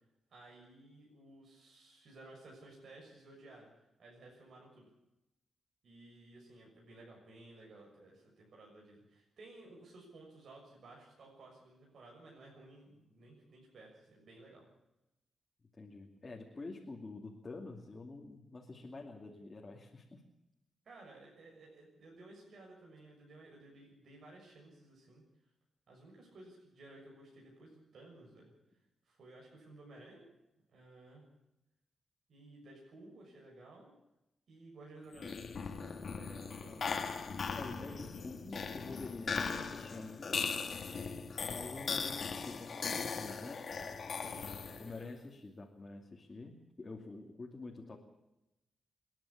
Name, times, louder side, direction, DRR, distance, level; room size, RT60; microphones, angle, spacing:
voice 1, 0.3-3.7 4.0-4.9 5.8-14.7 20.8-25.2 25.9-28.5 29.0-30.2 30.7-31.2 32.3-33.9 34.5-37.0 37.6-38.0 40.8-41.2 44.2-45.1, right 2 dB, 65° right, -2 dB, 6.6 m, -56 dB
voice 2, 15.8-20.2 36.7-36.8 37.5-40.5 41.4-43.6 44.8-48.0, left 3 dB, 30° left, -1 dB, 2.6 m, -47 dB
sound 1, 35.1-45.0, left 5 dB, 50° left, 2.1 m, -39 dB
28.0 x 11.0 x 8.7 m, 0.92 s
cardioid pair, 100°, 0 cm